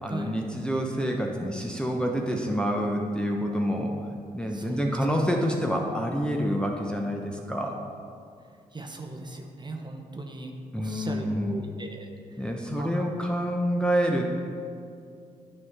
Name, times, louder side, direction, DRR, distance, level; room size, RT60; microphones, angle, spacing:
voice 1, 0.0-3.9 4.3-7.8 10.7-11.6 12.4-14.3, equal, 5° left, 0 dB, 0.9 m, -27 dB
voice 2, 8.7-12.1 12.7-13.0, right 2 dB, 25° right, 2 dB, 1.0 m, -38 dB
9.6 x 4.7 x 3.7 m, 2.3 s
hypercardioid pair, 40°, 18 cm